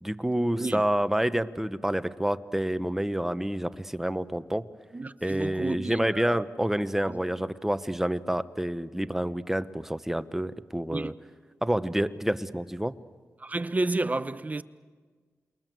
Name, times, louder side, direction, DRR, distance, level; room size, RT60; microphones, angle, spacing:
voice 1, 0.0-4.7 5.2-11.1 11.6-13.0, right 1 dB, 5° right, 1.0 m, -28 dB
voice 2, 4.9-6.4 7.0-7.2 10.9-11.1 13.4-14.6, right 2 dB, 30° right, 0.9 m, -31 dB
28.5 x 22.0 x 7.7 m
cardioid pair, 70°, 5 cm